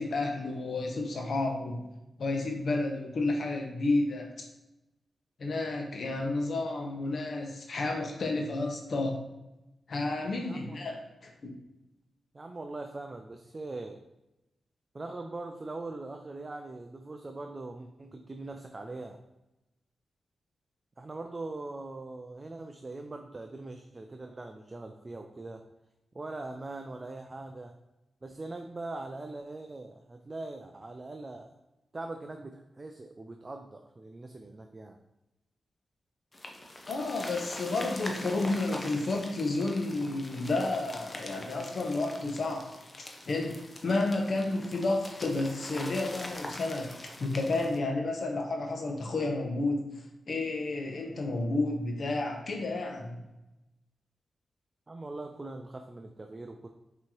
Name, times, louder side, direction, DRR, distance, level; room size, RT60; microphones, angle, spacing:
voice 1, 0.0-1.8 2.2-4.4 5.4-9.2 9.9-11.0 11.2-11.5 36.9-42.7 43.0-46.9 47.2-49.9 50.3-53.2, left 2 dB, 60° left, 2 dB, 0.9 m, -31 dB
voice 2, 10.5-10.8 12.3-14.0 14.9-19.2 21.0-25.6 26.1-27.8 28.2-31.5 31.9-35.0 54.9-56.7, right 2 dB, 30° right, 5 dB, 0.3 m, -41 dB
sound 1, 36.3-47.8, left 1 dB, 25° left, 0.6 m, -43 dB
6.0 x 2.9 x 3.0 m, 0.95 s
wide cardioid pair, 100°, 0 cm